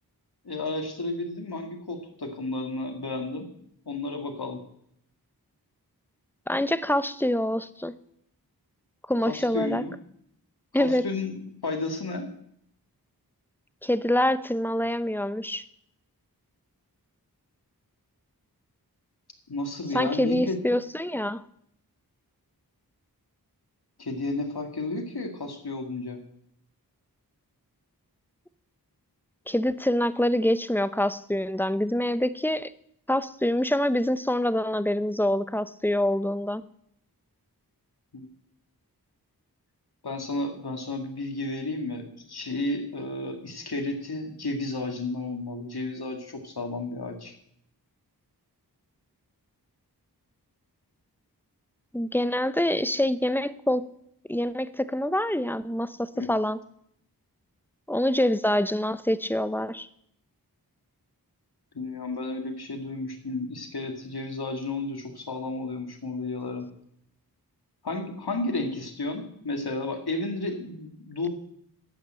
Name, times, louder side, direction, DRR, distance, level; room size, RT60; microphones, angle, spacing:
voice 1, 0.4-3.5 3.9-4.6 9.3-9.9 10.8-12.3 19.5-20.8 24.0-26.2 38.1-38.3 40.0-47.3 56.1-56.3 61.7-66.7 67.8-71.3, left 2 dB, 75° left, 4 dB, 2.3 m, -32 dB
voice 2, 6.5-7.9 9.1-9.8 10.7-11.0 13.8-15.6 19.9-21.4 29.5-32.7 33.1-36.6 51.9-53.9 54.3-56.6 57.9-59.9, left 1 dB, 5° left, 14 dB, 0.7 m, -25 dB
11.5 x 8.7 x 7.7 m, 0.72 s
wide cardioid pair, 40°, 39 cm